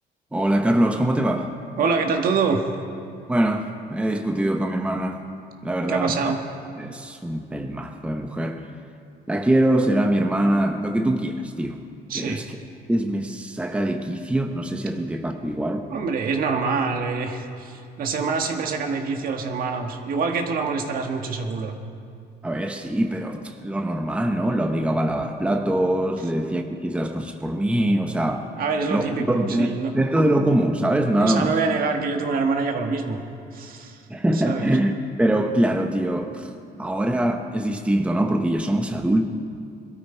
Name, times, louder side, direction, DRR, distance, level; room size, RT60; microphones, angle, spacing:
voice 1, 0.3-1.5 3.3-5.2 5.6-6.2 6.8-8.7 9.3-11.8 12.1-12.5 12.9-15.9 22.4-28.5 28.9-31.6 34.1-34.9 35.2-39.2, right 1 dB, 5° right, 5 dB, 0.9 m, -23 dB
voice 2, 1.8-2.6 5.9-6.4 12.1-12.4 15.9-21.7 28.6-29.9 31.2-33.2 33.5-34.0 34.4-34.7, right 4 dB, 60° right, 4 dB, 1.7 m, -25 dB
22.0 x 13.5 x 4.6 m, 2.4 s
cardioid pair, 110°, 17 cm